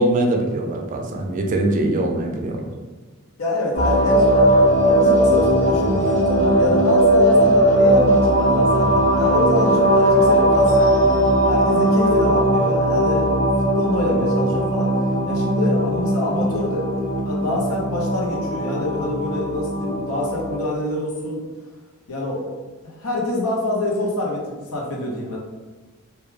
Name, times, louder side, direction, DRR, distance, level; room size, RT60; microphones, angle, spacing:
voice 1, 0.0-2.7, right 1 dB, 35° right, 1 dB, 0.4 m, -22 dB
voice 2, 3.4-4.5 4.8-11.1 11.5-13.5 13.7-15.0 15.3-16.9 17.2-21.4 22.1-25.4, left 1 dB, 85° left, -2 dB, 0.7 m, -26 dB
sound 1, 3.7-20.6, right 1 dB, 35° left, 0.7 m, -18 dB
2.2 x 2.2 x 3.1 m, 1.3 s
head